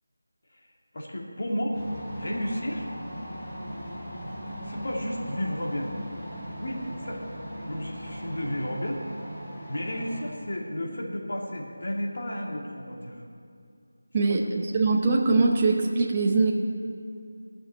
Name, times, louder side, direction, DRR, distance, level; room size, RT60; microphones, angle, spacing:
voice 1, 0.9-1.8 2.2-2.9 4.6-5.9 6.6-7.2 7.7-9.0 9.7-13.2, equal, 55° left, -1 dB, 2.2 m, -32 dB
sound 1, 1.7-10.2, equal, 10° left, 4.2 m, -38 dB
voice 2, 14.1-16.5, right 3 dB, 20° right, -1 dB, 0.7 m, -22 dB
17.5 x 6.4 x 9.3 m, 2.4 s
figure-of-eight pair, 175°, 0 cm